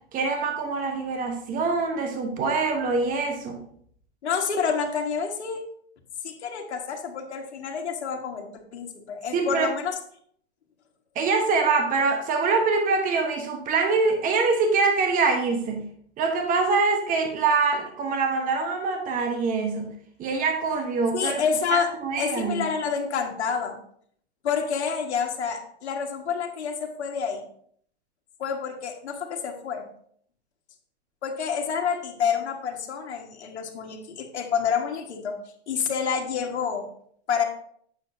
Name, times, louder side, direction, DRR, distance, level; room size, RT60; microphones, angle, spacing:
voice 1, 0.1-3.7 9.3-9.7 11.1-15.9 16.2-19.9 20.2-21.4 21.7-22.7, right 4 dB, 25° right, 4 dB, 1.2 m, -24 dB
voice 2, 4.2-5.6 6.2-9.9 21.1-21.9 22.2-23.8 24.4-27.4 28.4-29.9 31.2-35.4 35.7-36.9 37.3-37.4, left 6 dB, 80° left, 1 dB, 1.7 m, -28 dB
9.1 x 7.1 x 2.7 m, 0.63 s
hypercardioid pair, 125°, 33 cm